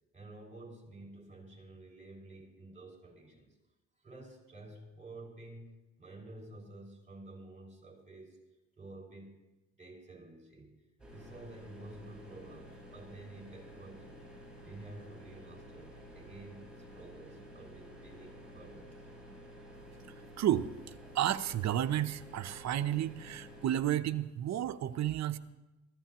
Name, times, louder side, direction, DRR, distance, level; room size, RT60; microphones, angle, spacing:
voice 1, 0.1-3.5 4.0-8.4 8.8-9.4 9.8-10.8 11.1-14.2 14.6-19.0, right 2 dB, 25° right, 0 dB, 5.8 m, -51 dB
sound 1, 11.0-23.8, equal, 5° right, 5.9 m, -51 dB
voice 2, 20.4-25.4, right 11 dB, 65° right, 12 dB, 0.7 m, -32 dB
19.5 x 14.5 x 3.0 m, 1.0 s
cardioid pair, 90°, 30 cm